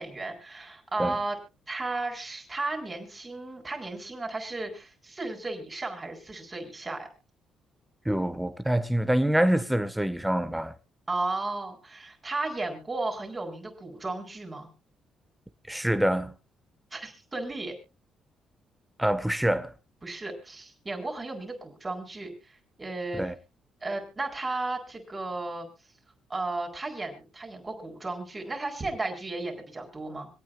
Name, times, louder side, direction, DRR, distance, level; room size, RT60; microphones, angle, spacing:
voice 1, 0.0-1.4 1.7-7.1 11.1-14.7 16.9-17.8 20.0-22.3 22.8-23.2 23.8-25.7 26.3-30.3, right 2 dB, 25° right, 4.3 m, -34 dB
voice 2, 8.0-10.7 15.7-16.3 19.0-19.7 23.1-23.3, right 1 dB, 5° right, 1.3 m, -25 dB
26.0 x 8.9 x 2.4 m
cardioid pair, 90°, 0 cm